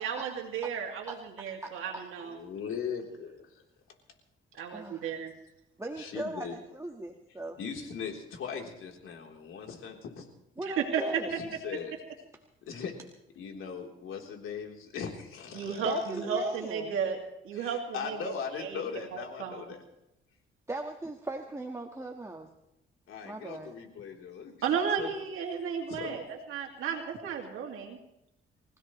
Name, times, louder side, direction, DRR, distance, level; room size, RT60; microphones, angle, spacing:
voice 1, 0.0-2.4 4.6-5.3 10.7-11.0 15.5-17.2 17.4-18.3 18.6-18.8 19.1-19.6 24.6-26.2 26.5-28.0, right 6 dB, 80° right, 1 dB, 2.3 m, -33 dB
voice 2, 1.6-2.0 4.7-5.2 5.8-7.6 10.6-11.3 15.9-16.9 20.7-22.5 23.2-23.7, right 2 dB, 15° right, 2 dB, 1.6 m, -39 dB
voice 3, 2.2-3.5 5.0-5.2 6.0-6.6 7.6-10.3 11.4-11.9 12.6-12.9 13.4-15.9 17.5-19.8 23.1-24.5 25.0-25.1 25.9-26.2, left 6 dB, 75° left, 1 dB, 3.6 m, -39 dB
25.5 x 16.5 x 3.2 m, 0.87 s
cardioid pair, 85°, 21 cm